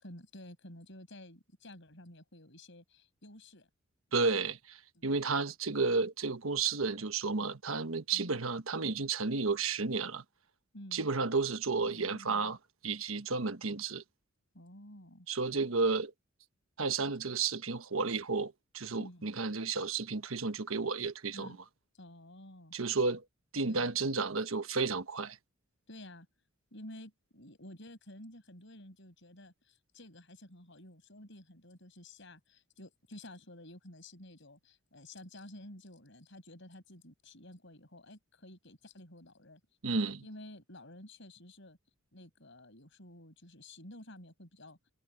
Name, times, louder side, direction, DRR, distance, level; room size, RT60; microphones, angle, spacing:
voice 1, 0.0-3.7 5.0-5.1 8.1-8.4 10.7-11.0 11.8-12.5 14.5-15.3 19.0-19.3 21.3-21.6 22.0-22.7 23.6-23.9 25.9-26.3 26.7-39.6 40.2-41.8 42.1-44.8, left 1 dB, 60° left, 7.5 m, -52 dB
voice 2, 4.1-10.2 10.9-12.6 12.8-14.0 15.3-16.1 16.8-21.6 22.7-23.2 23.5-25.4 39.8-40.2, right 4 dB, 80° right, 1.3 m, -32 dB
head